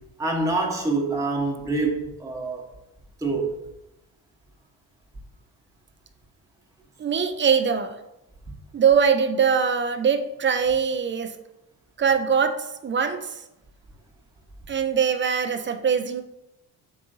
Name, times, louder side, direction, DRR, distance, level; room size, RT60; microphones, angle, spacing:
voice 1, 0.0-2.7 3.2-3.5, right 3 dB, 5° right, -2 dB, 1.0 m, -26 dB
voice 2, 7.0-7.9 8.7-11.3 12.0-13.4 14.7-16.2, right 6 dB, 25° right, 8 dB, 0.5 m, -22 dB
4.8 x 3.6 x 2.6 m, 0.89 s
hypercardioid pair, 50°, 46 cm